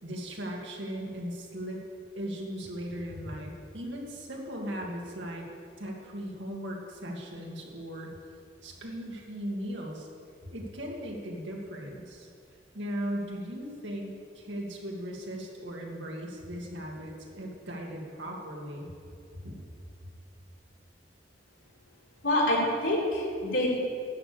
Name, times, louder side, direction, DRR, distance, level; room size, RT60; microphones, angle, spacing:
voice 1, 0.0-1.8 2.2-5.5 5.8-8.1 8.6-10.1 10.5-12.3 12.7-18.9 19.3-19.6, equal, 80° right, -1 dB, 2.2 m, -38 dB
voice 2, 22.2-23.7, left 1 dB, 90° left, -4 dB, 3.5 m, -26 dB
12.0 x 6.8 x 8.5 m, 2.4 s
head